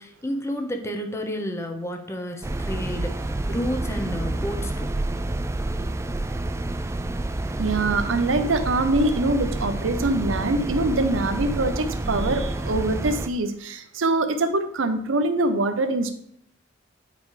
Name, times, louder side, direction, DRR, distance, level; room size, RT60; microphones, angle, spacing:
voice 1, 0.0-4.9, equal, 15° left, 4 dB, 0.8 m, -31 dB
sound 1, 2.4-13.3, right 2 dB, 15° right, 0.3 m, -28 dB
voice 2, 7.6-16.1, right 2 dB, 80° right, 9 dB, 0.7 m, -24 dB
9.4 x 4.9 x 3.3 m, 0.68 s
head